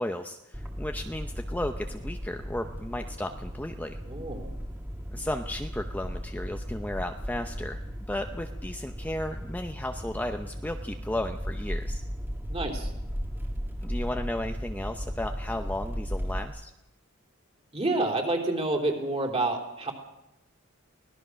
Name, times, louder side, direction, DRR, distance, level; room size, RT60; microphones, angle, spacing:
voice 1, 0.0-4.0 5.1-7.8 8.1-12.0 13.8-16.7, left 1 dB, 10° left, 5 dB, 0.7 m, -34 dB
sound 1, 0.5-16.4, equal, 10° right, 1.8 m, -36 dB
voice 2, 4.1-4.5 12.5-12.9 17.7-19.9, right 2 dB, 30° right, 2 dB, 3.6 m, -28 dB
24.0 x 18.0 x 6.3 m, 0.89 s
head